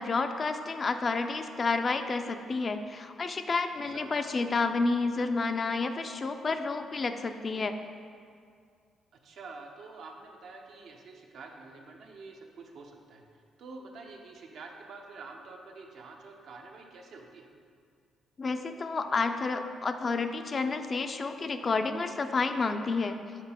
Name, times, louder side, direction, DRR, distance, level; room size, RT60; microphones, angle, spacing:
voice 1, 0.0-7.7 18.4-23.2, left 4 dB, 40° left, 8 dB, 0.3 m, -30 dB
voice 2, 3.9-4.3 9.2-13.2 13.6-17.5, right 3 dB, 70° right, 2 dB, 0.7 m, -47 dB
5.9 x 3.7 x 4.3 m, 2.2 s
cardioid pair, 90°, 0 cm